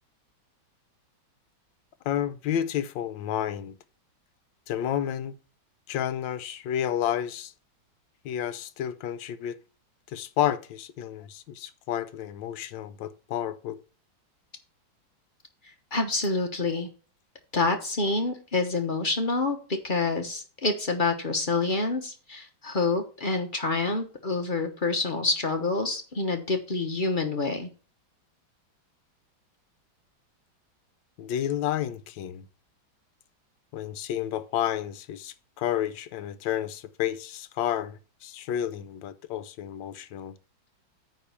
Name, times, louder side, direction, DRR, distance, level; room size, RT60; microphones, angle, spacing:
voice 1, 2.1-3.7 4.7-5.3 5.9-7.5 8.2-9.6 10.1-13.8 31.2-32.5 33.7-40.3, left 10 dB, 75° left, 1.3 m, -31 dB
voice 2, 15.9-16.9 17.5-27.7, left 3 dB, 35° left, 0.9 m, -27 dB
9.3 x 3.7 x 6.8 m
omnidirectional pair, 2.2 m